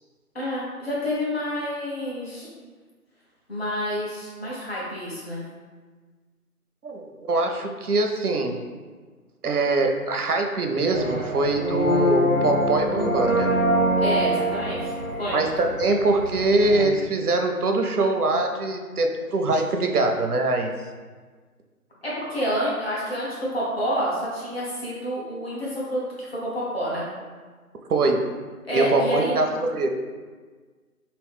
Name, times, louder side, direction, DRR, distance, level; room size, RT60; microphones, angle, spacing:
voice 1, 0.3-2.5 3.5-5.4 14.0-14.9 15.2-15.4 22.0-27.1 28.7-29.3, equal, 40° left, -7 dB, 1.1 m, -28 dB
voice 2, 6.8-8.6 9.4-13.5 15.3-20.7 27.9-28.2 28.7-29.9, right 2 dB, 80° right, 4 dB, 0.6 m, -23 dB
sound 1, 10.9-16.8, equal, 75° left, 1.4 m, -24 dB
3.0 x 2.9 x 3.4 m, 1.5 s
figure-of-eight pair, 160°, 45 cm